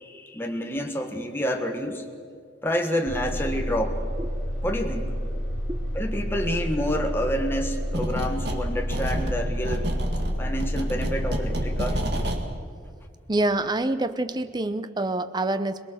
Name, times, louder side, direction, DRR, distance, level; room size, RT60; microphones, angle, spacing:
voice 1, 0.0-2.1 2.6-4.0 4.6-5.1 5.9-9.9 10.4-12.0, equal, 10° left, 3 dB, 1.4 m, -28 dB
sound 1, 3.0-12.4, equal, 70° left, 3.5 m, -29 dB
sound 2, 7.9-8.6 8.9-12.4, right 1 dB, 60° right, 1.9 m, -30 dB
voice 2, 13.3-15.9, right 2 dB, 20° right, 11 dB, 0.7 m, -26 dB
22.5 x 20.5 x 6.6 m, 2.1 s
head